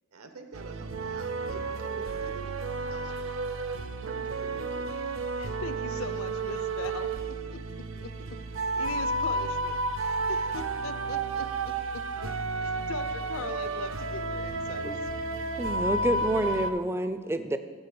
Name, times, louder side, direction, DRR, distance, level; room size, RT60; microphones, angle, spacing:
voice 1, 0.1-2.5 2.9-3.3 4.0-5.0, right 3 dB, 80° right, 7 dB, 1.0 m, -46 dB
sound 1, 0.5-16.7, right 3 dB, 60° right, 0.5 m, -32 dB
voice 2, 5.4-8.1 8.8-9.8 10.3-12.3 12.6-14.9 15.7-15.9, left 4 dB, 70° left, 11 dB, 0.6 m, -40 dB
voice 3, 15.6-17.6, right 1 dB, 10° right, 10 dB, 0.3 m, -28 dB
9.6 x 4.6 x 7.7 m, 1.5 s
head